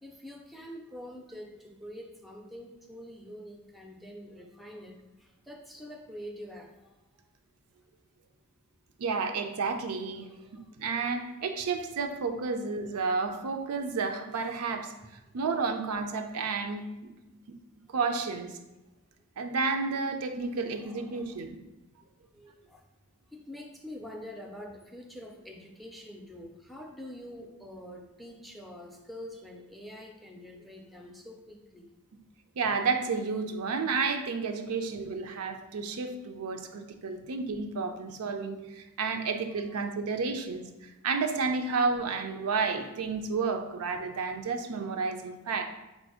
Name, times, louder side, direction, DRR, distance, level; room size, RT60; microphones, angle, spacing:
voice 1, 0.0-6.9 10.2-10.5 10.8-10.9 20.5-21.4 22.3-22.8 23.3-31.9 39.1-39.6, equal, ahead, 2 dB, 0.4 m, -46 dB
voice 2, 9.0-10.3 10.8-14.9 15.3-16.8 17.5-17.6 17.9-18.6 19.4-21.6 32.6-45.7, right 4 dB, 80° right, 6 dB, 0.5 m, -31 dB
4.2 x 2.6 x 4.7 m, 1.0 s
head